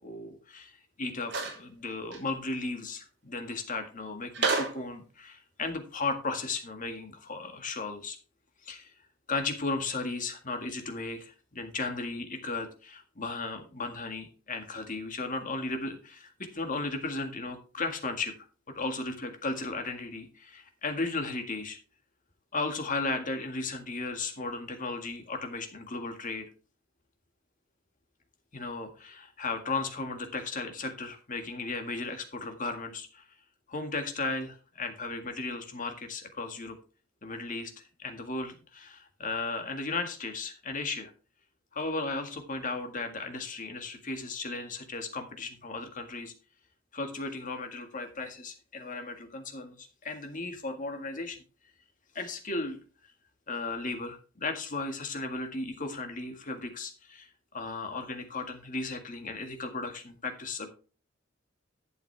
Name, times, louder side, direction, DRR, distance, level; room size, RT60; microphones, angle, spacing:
voice 1, 0.0-8.2 8.6-8.9 9.3-18.3 18.8-21.8 22.5-26.5 28.5-33.3 33.7-36.8 37.2-41.1 41.7-46.3 46.9-51.4 52.1-52.8 53.5-60.7, left 3 dB, 40° left, 6 dB, 1.8 m, -35 dB
sound 1, 1.3-1.6 2.1-2.2 4.3-4.8, right 4 dB, 60° right, 3.3 m, -29 dB
11.5 x 8.5 x 3.4 m, 0.36 s
head